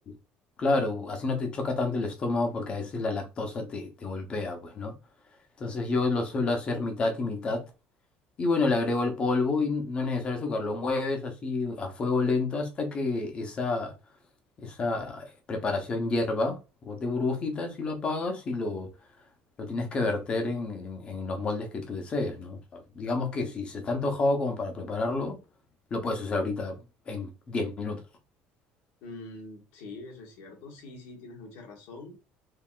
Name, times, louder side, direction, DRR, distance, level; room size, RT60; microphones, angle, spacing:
voice 1, 0.6-4.9 5.6-7.6 8.4-13.9 14.6-18.9 19.6-25.4 25.9-26.8 27.1-28.0, left 3 dB, 25° left, 0.9 m, -29 dB
voice 2, 29.0-32.2, left 2 dB, 80° left, 1.5 m, -44 dB
3.7 x 3.4 x 2.4 m
cardioid pair, 165°, 4 cm